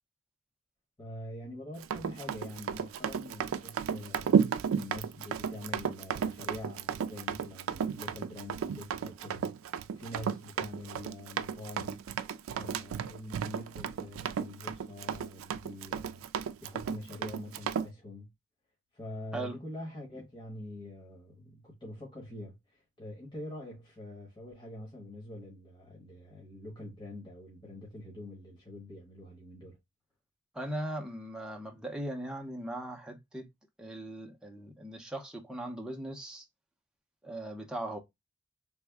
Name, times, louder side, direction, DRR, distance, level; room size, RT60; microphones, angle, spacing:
voice 1, 1.0-12.0 12.5-16.2 16.6-18.3 18.9-29.8, left 1 dB, 25° left, 1.2 m, -45 dB
Run, 1.8-17.9, right 7 dB, 75° right, 0.3 m, -33 dB
voice 2, 30.5-33.5 33.8-36.4 37.2-38.0, right 1 dB, 5° right, 0.6 m, -39 dB
3.4 x 2.1 x 3.4 m
head